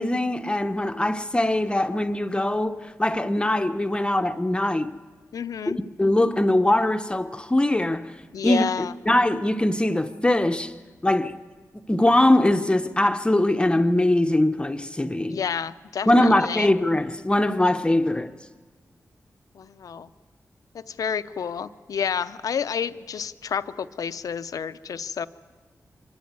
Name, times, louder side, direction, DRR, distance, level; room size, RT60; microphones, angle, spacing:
voice 1, 0.0-4.9 6.0-8.1 8.4-10.7 11.0-11.4 11.7-15.4 16.1-18.3, left 1 dB, 15° left, 0.7 m, -22 dB
voice 2, 5.3-5.8 8.3-8.9 15.3-16.7 19.5-20.1 20.7-25.3, left 7 dB, 85° left, 0.6 m, -30 dB
25.0 x 13.0 x 9.5 m
wide cardioid pair, 75°, 6 cm